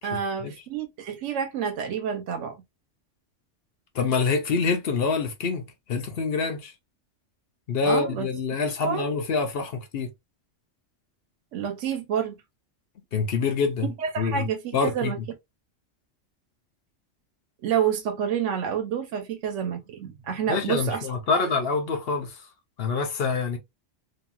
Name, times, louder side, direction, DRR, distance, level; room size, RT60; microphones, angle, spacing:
voice 1, 0.0-2.5 7.8-8.3 8.8-9.1 11.5-12.4 14.0-15.2 17.6-21.1, right 7 dB, 80° right, 1.0 m, -28 dB
voice 2, 3.9-6.7 7.7-10.1 13.1-13.9 14.2-14.5 14.7-15.3 20.5-22.4 22.8-23.6, left 4 dB, 60° left, 0.8 m, -26 dB
2.9 x 2.6 x 2.2 m
omnidirectional pair, 1.3 m